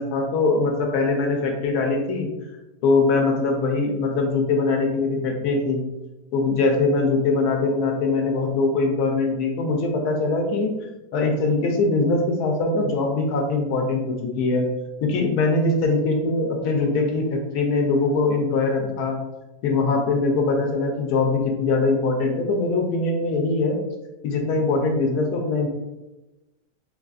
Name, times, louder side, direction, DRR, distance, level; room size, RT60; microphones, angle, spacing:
voice 1, 0.0-2.3 2.8-5.8 6.3-10.7 11.1-14.7 15.0-19.2 19.6-23.8 24.2-25.7, left 3 dB, 75° left, 2 dB, 1.1 m, -22 dB
4.0 x 2.4 x 2.3 m, 1.0 s
omnidirectional pair, 1.8 m